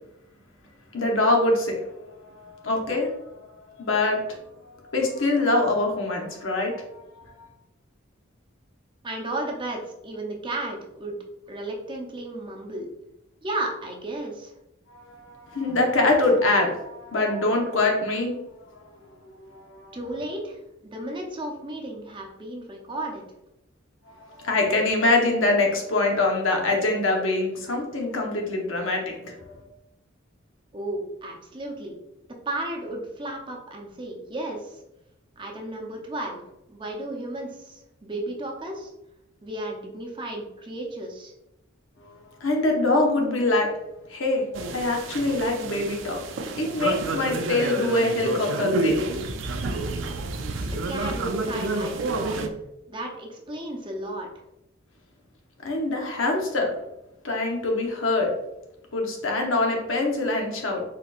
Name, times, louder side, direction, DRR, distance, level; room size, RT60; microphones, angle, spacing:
voice 1, 0.9-1.8 2.3-3.3 3.7-4.4 4.7-7.0 7.4-7.5 14.9-18.4 19.3-20.0 24.2-29.6 42.4-43.7 44.1-44.5 44.7-46.2 46.6-49.1 55.6-56.7 57.2-58.3 58.9-60.8, left 2 dB, 80° left, 1 dB, 1.0 m, -24 dB
voice 2, 9.0-11.2 11.5-12.9 13.4-14.5 19.9-20.6 20.9-23.2 30.7-32.0 32.5-34.8 35.4-36.4 36.7-38.9 39.4-41.3 50.9-52.5 52.9-54.3, right 1 dB, 25° right, 0 dB, 0.7 m, -33 dB
sound 1, 44.5-52.5, right 2 dB, 70° right, 0.5 m, -29 dB
4.3 x 4.0 x 2.4 m, 0.88 s
head